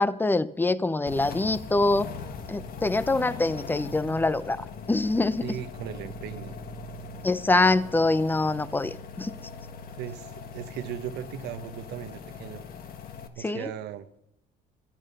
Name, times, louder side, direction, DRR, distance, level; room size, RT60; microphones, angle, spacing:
voice 1, 0.0-2.1 2.5-5.5 7.2-9.3 13.4-13.7, left 2 dB, 10° left, 15 dB, 0.7 m, -25 dB
sound 1, 1.1-13.3, left 5 dB, 60° left, 1.8 m, -41 dB
voice 2, 5.4-6.6 10.0-12.6 13.4-14.1, right 11 dB, 80° right, 11 dB, 1.2 m, -37 dB
26.5 x 9.0 x 5.4 m, 0.80 s
cardioid pair, 110°, 17 cm